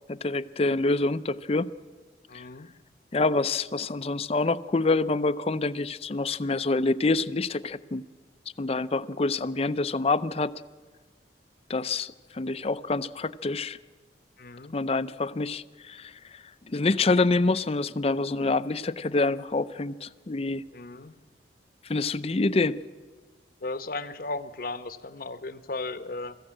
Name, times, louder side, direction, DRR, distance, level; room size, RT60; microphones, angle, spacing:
voice 1, 0.1-1.7 2.3-2.4 3.1-8.0 8.6-10.5 11.7-13.8 14.7-20.6 21.9-22.8, left 3 dB, 35° left, 14 dB, 0.5 m, -26 dB
voice 2, 2.3-2.7 14.4-14.8 20.7-21.2 23.6-26.4, left 3 dB, 55° left, 13 dB, 0.9 m, -36 dB
21.5 x 14.5 x 8.9 m, 1.4 s
head